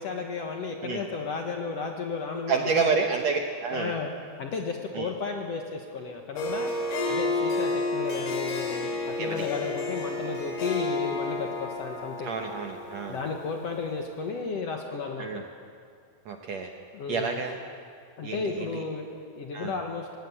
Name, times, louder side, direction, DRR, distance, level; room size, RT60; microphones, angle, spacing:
voice 1, 0.0-2.9 3.7-4.1 4.4-6.7 7.1-12.3 13.1-15.3 16.9-17.4 18.2-20.2, left 4 dB, 60° left, 3 dB, 1.8 m, -33 dB
voice 2, 2.5-3.9 4.9-5.1 9.2-9.4 12.2-13.2 15.2-15.4 16.3-16.7 17.1-17.6 18.2-18.8 19.5-19.7, right 5 dB, 65° right, 3 dB, 1.8 m, -29 dB
Harp, 6.4-13.9, left 2 dB, 80° left, 4.7 m, -31 dB
19.5 x 18.5 x 8.5 m, 2.2 s
omnidirectional pair, 4.3 m